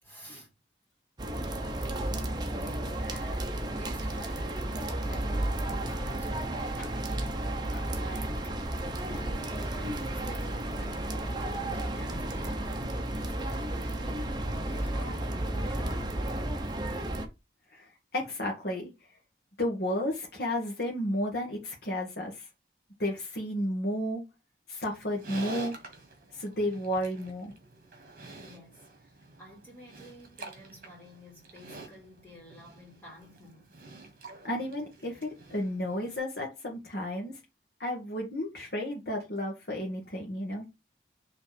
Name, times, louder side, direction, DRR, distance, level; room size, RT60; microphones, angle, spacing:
voice 1, 0.0-0.5 2.4-8.6 9.0-16.7 28.4-33.7, equal, 10° left, 2.7 m, -49 dB
sound 1, 1.2-17.3, right 1 dB, 25° right, 0.9 m, -33 dB
voice 2, 17.7-18.9 19.6-22.5 23.0-24.2 24.7-25.7 26.3-27.5 34.4-37.4 37.8-40.6, left 1 dB, 65° left, 1.5 m, -32 dB
Livestock farm animals working animals, 24.9-36.2, right 2 dB, 50° right, 1.8 m, -48 dB
5.5 x 3.4 x 5.1 m
head